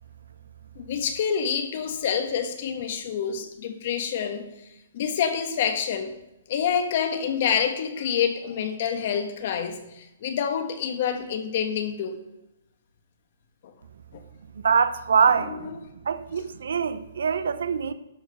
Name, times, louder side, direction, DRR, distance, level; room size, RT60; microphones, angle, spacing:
voice 1, 0.8-4.5 4.9-6.1 6.5-12.2 13.6-13.7 14.1-14.2 15.4-15.7, left 7 dB, 50° left, 1.3 m, -27 dB
voice 2, 14.6-15.8 16.0-17.9, right 6 dB, 80° right, 0.7 m, -23 dB
12.0 x 4.8 x 5.4 m
hypercardioid pair, 160°, 0 cm